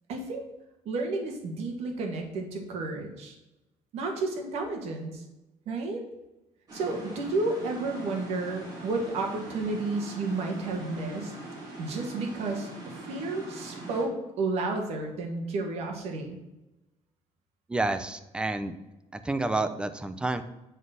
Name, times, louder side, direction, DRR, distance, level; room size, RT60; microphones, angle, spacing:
voice 1, 0.1-0.4 0.8-3.4 3.9-5.2 5.6-6.0 6.7-11.3 11.8-16.4, right 3 dB, 65° right, 3 dB, 1.6 m, -31 dB
sound 1, 6.7-14.0, right 1 dB, 30° right, 2.4 m, -42 dB
voice 2, 17.7-18.7 19.1-20.4, right 2 dB, 10° right, 10 dB, 0.4 m, -29 dB
7.4 x 4.0 x 6.4 m, 0.98 s
cardioid pair, 160°, 12 cm